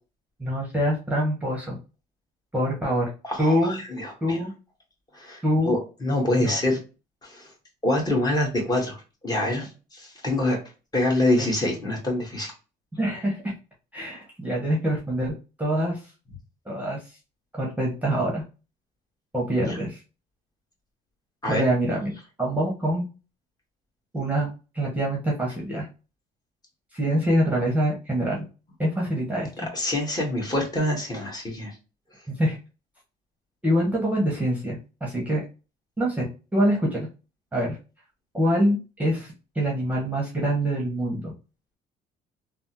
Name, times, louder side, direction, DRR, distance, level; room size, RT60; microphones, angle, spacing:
voice 1, 0.4-1.8 2.5-3.1 3.4-3.8 4.2-4.5 5.4-5.8 6.4-6.6 11.4-11.5 13.0-13.5 13.9-15.3 15.6-16.0 16.7-17.0 17.5-18.4 19.3-20.0 21.5-22.1 22.4-23.0 24.1-24.5 24.7-25.9 26.9-28.4 28.8-29.7 32.3-32.6 33.6-35.4 36.0-36.3 36.5-37.1 37.5-37.8 38.3-41.3, equal, 10° right, -2 dB, 1.0 m, -25 dB
voice 2, 3.2-4.4 5.1-6.8 7.2-7.5 7.8-9.0 9.2-10.6 10.9-12.5 19.7-19.8 21.4-21.6 29.7-31.7, left 1 dB, 25° left, -1 dB, 1.4 m, -25 dB
3.4 x 2.1 x 2.8 m, 0.32 s
cardioid pair, 110°, 17 cm